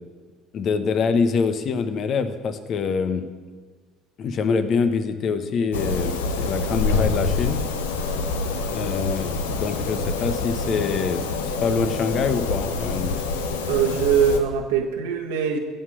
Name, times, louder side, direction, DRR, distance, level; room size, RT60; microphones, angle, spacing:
voice 1, 0.5-3.2 4.2-7.6 8.6-13.1, left 5 dB, 55° left, 10 dB, 1.1 m, -25 dB
sound 1, 5.7-14.4, left 3 dB, 85° left, 1.0 m, -26 dB
voice 2, 13.7-15.6, right 7 dB, 80° right, 1 dB, 1.3 m, -22 dB
16.5 x 6.6 x 6.3 m, 1.5 s
hypercardioid pair, 60°, 0 cm